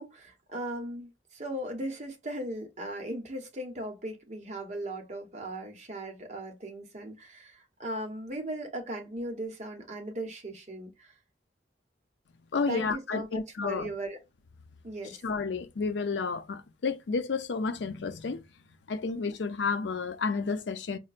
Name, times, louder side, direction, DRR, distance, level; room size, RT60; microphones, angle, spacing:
voice 1, 0.0-11.1 12.7-14.2 14.8-15.2, right 1 dB, 40° right, 0.9 m, -38 dB
voice 2, 12.5-13.9 15.2-18.4 18.9-21.0, left 4 dB, 80° left, 0.5 m, -31 dB
5.3 x 2.1 x 2.4 m
head